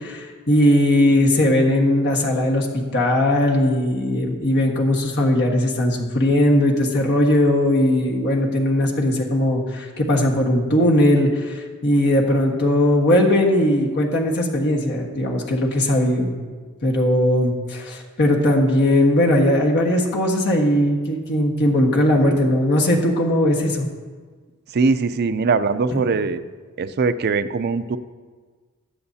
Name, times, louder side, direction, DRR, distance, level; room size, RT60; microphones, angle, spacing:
voice 1, 0.0-16.3 16.8-23.9 25.9-26.0, left 1 dB, 55° left, -1 dB, 1.4 m, -19 dB
voice 2, 24.7-26.4 26.8-28.0, right 4 dB, 50° right, 11 dB, 0.5 m, -21 dB
20.5 x 7.9 x 2.8 m, 1.5 s
head